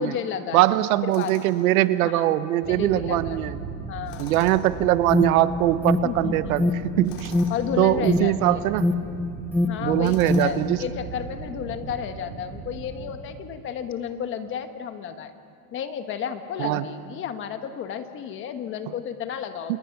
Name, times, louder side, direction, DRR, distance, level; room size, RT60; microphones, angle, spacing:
voice 1, 0.0-0.6 1.0-1.3 2.0-2.3 2.7-3.4 3.9-4.3 6.0-6.6 7.5-8.6 9.6-15.3 15.7-19.8, left 8 dB, 25° left, 8 dB, 1.2 m, -32 dB
voice 2, 0.5-3.6 4.2-7.3 7.8-8.9 9.8-10.8 16.6-16.9 19.7-19.8, right 15 dB, 70° right, 13 dB, 1.1 m, -22 dB
Tools, 1.1-1.7 4.0-4.8 7.0-7.6 10.0-10.7, left 6 dB, 75° left, 6.2 m, -43 dB
sound 1, 2.6-13.1, right 4 dB, 30° right, 3.3 m, -38 dB
Alarm, 4.8-10.7, left 2 dB, 5° left, 0.5 m, -26 dB
29.5 x 28.0 x 5.9 m, 2.5 s
supercardioid pair, 165°, 45 cm